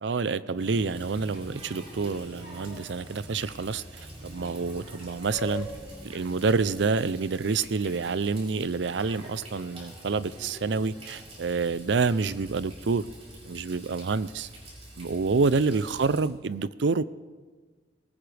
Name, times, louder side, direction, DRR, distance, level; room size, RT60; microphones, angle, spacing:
voice 1, 0.0-3.8 4.2-5.7 6.0-13.0 13.4-14.5 15.0-17.0, right 4 dB, 90° right, 17 dB, 0.5 m, -27 dB
Water tap faucet, 0.6-16.2, equal, 35° right, 5.5 m, -44 dB
20.5 x 18.5 x 3.4 m, 1.4 s
head